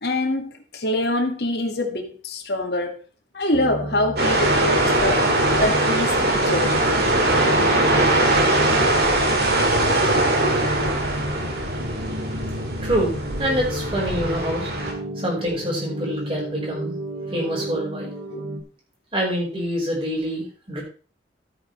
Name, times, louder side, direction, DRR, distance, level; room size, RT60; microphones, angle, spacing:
voice 1, 0.0-3.0 3.3-5.3 5.6-6.8 18.3-18.4, left 1 dB, 65° left, 2.0 m, -25 dB
sound 1, 3.5-18.6, equal, 80° right, 2.6 m, -32 dB
sound 2, 4.2-14.9, right 1 dB, 60° right, 2.3 m, -21 dB
voice 2, 12.8-14.7 15.2-17.0 17.2-18.1 19.1-20.8, equal, 30° right, 4.8 m, -26 dB
13.0 x 8.7 x 3.3 m
head